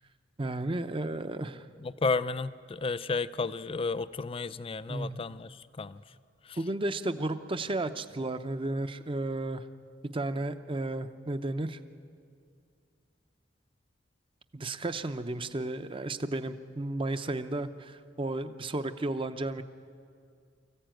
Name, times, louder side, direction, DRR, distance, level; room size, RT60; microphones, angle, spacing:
voice 1, 0.4-1.6 4.9-5.2 6.6-9.6 10.1-11.8 14.5-19.6, right 2 dB, 25° right, 11 dB, 0.7 m, -33 dB
voice 2, 1.8-6.0 6.4-6.6, left 4 dB, 30° left, 15 dB, 0.4 m, -32 dB
24.0 x 15.0 x 9.1 m, 2.3 s
head